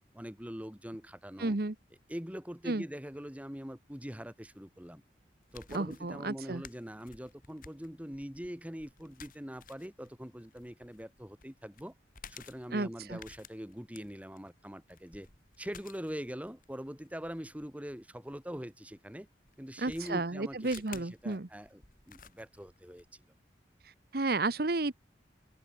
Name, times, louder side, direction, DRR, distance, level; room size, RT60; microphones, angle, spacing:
voice 1, 0.1-1.6 2.1-5.0 5.5-11.9 12.3-15.3 15.6-19.3 19.6-23.2, equal, 10° right, 1.7 m, -43 dB
voice 2, 1.4-1.7 2.7-2.8 5.7-6.6 12.7-13.2 19.8-21.5 24.1-24.9, right 2 dB, 55° right, 1.1 m, -32 dB
sound 1, 5.4-18.6 19.5-23.1, left 6 dB, 50° left, 4.3 m, -55 dB
head